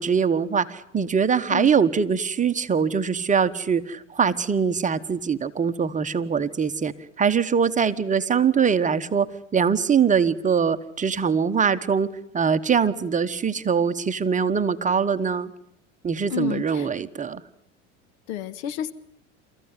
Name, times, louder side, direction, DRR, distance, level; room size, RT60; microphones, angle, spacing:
voice 1, 0.0-9.3 9.5-15.5 16.0-17.4, right 6 dB, 20° right, 10 dB, 1.2 m, -23 dB
voice 2, 16.3-16.9 18.3-18.9, left 10 dB, 70° left, 15 dB, 1.6 m, -30 dB
29.0 x 15.0 x 9.8 m, 0.74 s
hypercardioid pair, 95°, 35 cm